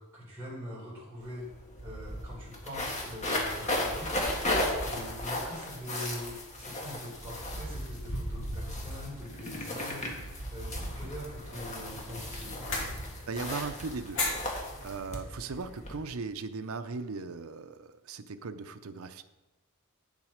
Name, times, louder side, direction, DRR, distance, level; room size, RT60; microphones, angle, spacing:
voice 1, 0.1-1.5 1.8-12.6, equal, 10° right, -10 dB, 3.9 m, -43 dB
sound 1, 1.2-1.3 1.5-16.0, left 1 dB, 35° left, 1.7 m, -35 dB
sound 2, 10.8-16.2, left 2 dB, 65° left, 2.9 m, -39 dB
voice 2, 13.3-14.2 14.8-19.2, right 4 dB, 85° right, 10 dB, 0.6 m, -38 dB
9.2 x 7.4 x 5.1 m, 1.1 s
head